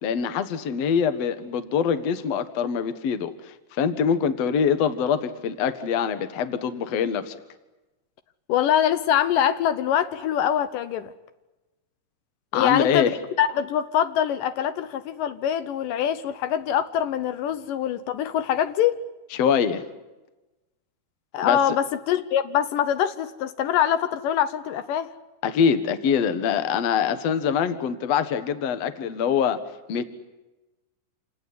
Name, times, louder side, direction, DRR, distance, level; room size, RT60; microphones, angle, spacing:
voice 1, 0.0-7.4 12.5-13.1 19.4-19.8 21.4-21.6 25.4-29.6 29.9-30.0, left 7 dB, 55° left, 11 dB, 2.3 m, -24 dB
voice 2, 8.5-11.1 12.5-19.0 21.3-25.1, left 9 dB, 80° left, 11 dB, 2.6 m, -24 dB
28.0 x 18.5 x 9.7 m, 1.1 s
omnidirectional pair, 3.9 m